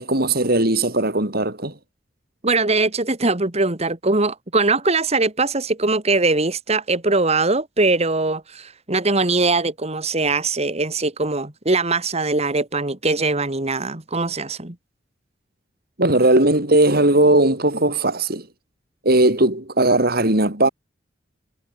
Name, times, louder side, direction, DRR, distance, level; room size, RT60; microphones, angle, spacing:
voice 1, 0.0-1.7 16.0-18.4 19.0-20.7, right 2 dB, 55° right, 4.9 m, -18 dB
voice 2, 2.4-14.7, right 3 dB, 35° right, 2.2 m, -21 dB
head